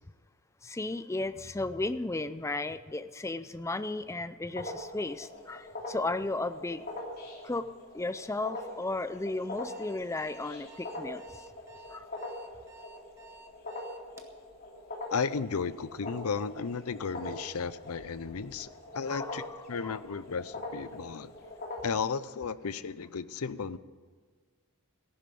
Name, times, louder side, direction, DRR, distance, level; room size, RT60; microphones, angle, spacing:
voice 1, 0.6-6.9 7.4-7.7 7.9-11.2 11.9-12.1 19.1-20.0, left 2 dB, 15° left, 13 dB, 0.4 m, -34 dB
sound 1, 4.5-22.0, left 2 dB, 45° left, 2.9 m, -43 dB
Alarm, 9.7-14.4, right 3 dB, 10° right, 1.3 m, -53 dB
voice 2, 15.1-18.7 18.9-21.3 21.8-23.8, left 5 dB, 75° left, 16 dB, 0.6 m, -34 dB
14.5 x 11.0 x 7.0 m, 1.5 s
head